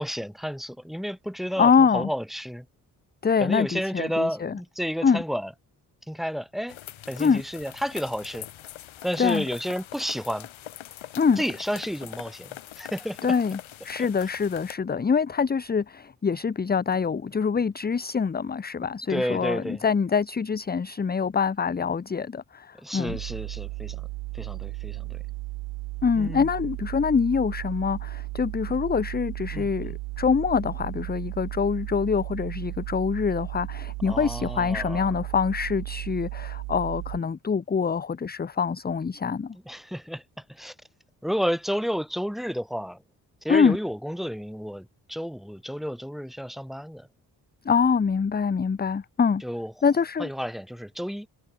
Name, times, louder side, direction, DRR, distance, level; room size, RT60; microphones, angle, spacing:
voice 1, 0.0-2.7 3.4-5.5 6.1-6.8 7.1-8.5 9.0-10.5 11.4-13.2 19.1-19.8 22.8-24.1 24.3-25.2 26.2-26.5 29.5-30.0 34.1-35.0 39.7-40.2 40.5-40.7 41.2-43.0 43.4-47.1 49.4-49.7 50.2-51.3, equal, ahead, 2.5 m, -31 dB
voice 2, 1.6-2.1 3.2-4.6 5.0-5.2 7.2-7.4 9.2-9.4 11.2-11.4 13.2-13.6 13.8-23.2 26.0-39.6 43.5-43.8 47.6-49.4 49.8-50.3, left 6 dB, 20° left, 0.7 m, -25 dB
sound 1, 6.7-14.7, left 12 dB, 75° left, 4.1 m, -42 dB
sound 2, 23.1-37.2, right 24 dB, 85° right, 1.2 m, -35 dB
hypercardioid pair, 45°, 48 cm